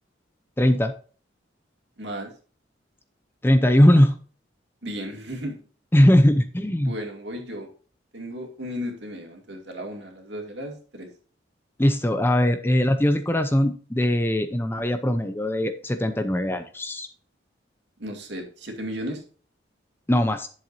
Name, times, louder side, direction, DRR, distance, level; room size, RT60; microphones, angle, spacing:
voice 1, 0.6-0.9 3.4-4.1 5.9-6.9 11.8-17.1 20.1-20.5, left 1 dB, 10° left, 8 dB, 0.6 m, -20 dB
voice 2, 2.0-2.3 4.8-5.6 6.8-7.7 8.1-11.1 18.0-19.2, equal, 65° right, 2 dB, 2.4 m, -34 dB
11.0 x 7.3 x 2.7 m, 0.40 s
head